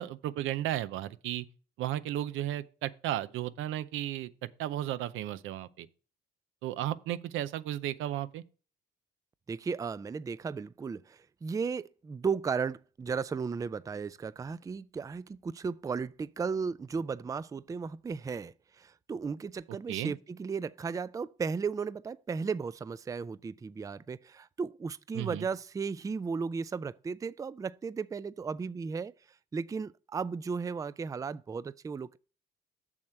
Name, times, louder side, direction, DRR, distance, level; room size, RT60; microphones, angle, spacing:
voice 1, 0.0-1.5 1.8-4.3 4.6-5.9 6.6-8.4 19.9-20.1 25.1-25.4, right 13 dB, 90° right, 0.6 m, -34 dB
voice 2, 9.5-29.1 29.5-32.2, right 5 dB, 15° right, 0.3 m, -35 dB
7.2 x 6.6 x 4.4 m
cardioid pair, 90°, 20 cm